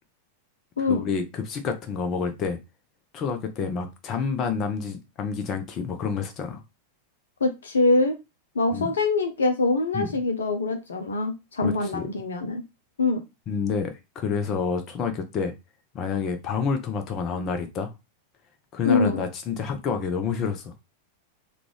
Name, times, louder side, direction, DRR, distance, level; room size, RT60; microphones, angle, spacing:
voice 1, 0.9-2.6 3.1-6.6 8.7-8.9 9.9-10.1 11.6-12.1 13.5-15.5 15.9-17.9 18.7-20.7, left 5 dB, 30° left, 0.7 m, -28 dB
voice 2, 7.4-8.1 8.5-12.6 13.0-13.2 18.8-19.2, left 3 dB, 70° left, 0.6 m, -24 dB
3.7 x 2.4 x 3.2 m
figure-of-eight pair, 90°, 0 cm